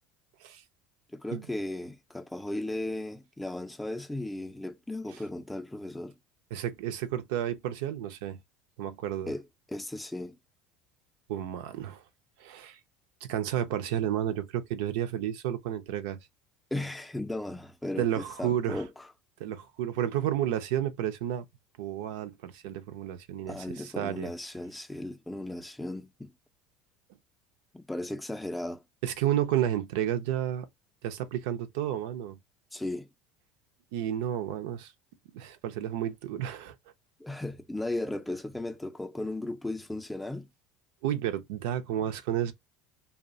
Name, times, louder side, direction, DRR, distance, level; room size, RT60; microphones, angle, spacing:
voice 1, 1.1-6.1 9.3-10.4 16.7-19.1 23.5-26.3 27.7-28.8 32.7-33.1 37.2-40.5, left 1 dB, 5° left, 0.4 m, -36 dB
voice 2, 6.5-8.4 8.8-9.3 11.3-12.0 12.4-12.8 13.2-16.2 18.0-18.8 19.4-21.4 21.8-24.3 29.0-30.7 31.0-32.4 33.9-34.9 35.3-36.7 41.0-42.5, right 11 dB, 80° right, 0.5 m, -31 dB
2.6 x 2.1 x 2.5 m
supercardioid pair, 115°, 0 cm